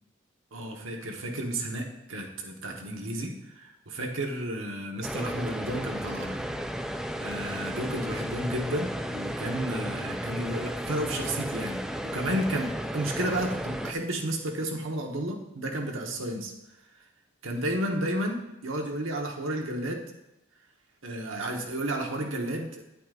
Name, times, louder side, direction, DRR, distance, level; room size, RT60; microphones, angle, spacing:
voice 1, 0.5-6.4 7.2-16.5 17.4-20.0 21.0-22.8, right 1 dB, 85° right, 1 dB, 1.3 m, -32 dB
sound 1, 5.0-13.9, equal, 5° right, 0.4 m, -34 dB
9.8 x 8.5 x 2.5 m, 0.89 s
head